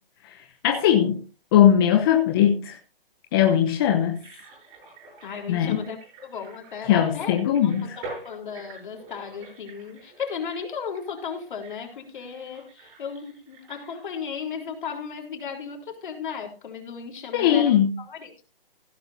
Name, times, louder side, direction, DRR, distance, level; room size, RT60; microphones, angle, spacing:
voice 1, 0.6-1.2 1.5-2.8 3.3-4.2 5.5-5.8 6.9-8.0 17.3-18.0, left 10 dB, 25° left, 4 dB, 0.9 m, -20 dB
sound 1, 4.0-14.6 14.9-15.0, right 3 dB, 20° right, 7.8 m, -46 dB
voice 2, 5.2-7.4 7.6-18.5, left 6 dB, 55° left, 3 dB, 3.9 m, -35 dB
15.5 x 12.0 x 2.7 m, 0.32 s
hypercardioid pair, 155°, 29 cm